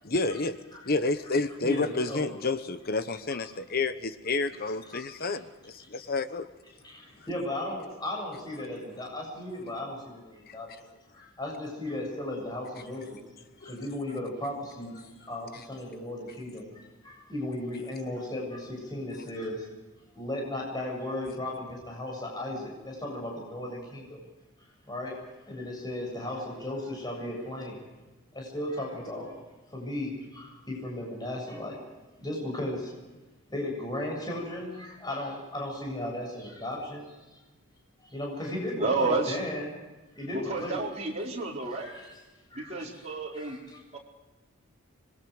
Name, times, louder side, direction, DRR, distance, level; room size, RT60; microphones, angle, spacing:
voice 1, 0.0-0.6 0.9-6.5 10.5-10.6 13.6-13.7, left 3 dB, 45° left, 10 dB, 1.1 m, -30 dB
voice 2, 1.6-2.2 3.3-3.4 4.9-5.3 6.8-10.7 11.1-13.2 13.6-19.7 20.1-24.2 24.8-25.2 25.5-27.8 28.3-29.3 29.7-31.8 32.2-32.9 33.5-37.4 38.0-39.7 40.2-40.8 41.7-42.1 42.5-43.8, left 1 dB, 20° left, -1 dB, 7.5 m, -36 dB
voice 3, 38.8-39.4 40.3-41.9 42.5-43.6 43.9-44.0, right 3 dB, 30° right, -3 dB, 4.7 m, -30 dB
26.0 x 22.5 x 5.1 m, 1.2 s
head